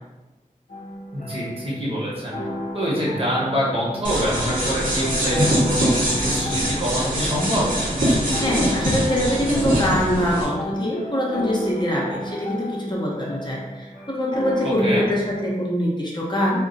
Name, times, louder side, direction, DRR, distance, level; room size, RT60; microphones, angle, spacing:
sound 1, 0.7-15.1, left 1 dB, 85° left, 0.6 m, -34 dB
voice 1, 1.1-2.4 2.7-7.8 14.6-15.0, equal, 40° right, -5 dB, 0.9 m, -25 dB
sound 2, 4.0-10.4, equal, 70° right, 0.8 m, -23 dB
voice 2, 8.4-16.6, equal, 30° left, -4 dB, 0.7 m, -23 dB
2.4 x 2.1 x 3.8 m, 1.1 s
wide cardioid pair, 70°, 14 cm